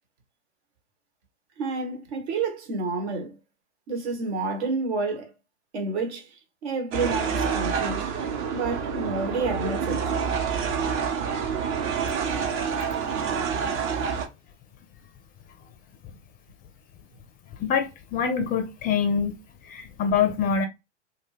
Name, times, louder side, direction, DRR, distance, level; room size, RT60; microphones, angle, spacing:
voice 1, 1.6-3.4 3.9-5.3 5.7-8.1 8.5-10.1, right 3 dB, 65° right, 1.1 m, -29 dB
sound 1, 6.9-14.3, right 6 dB, 45° right, 0.8 m, -27 dB
voice 2, 17.6-19.4 19.6-20.7, left 6 dB, 25° left, 0.4 m, -25 dB
2.5 x 2.2 x 3.1 m
hypercardioid pair, 95°, 35 cm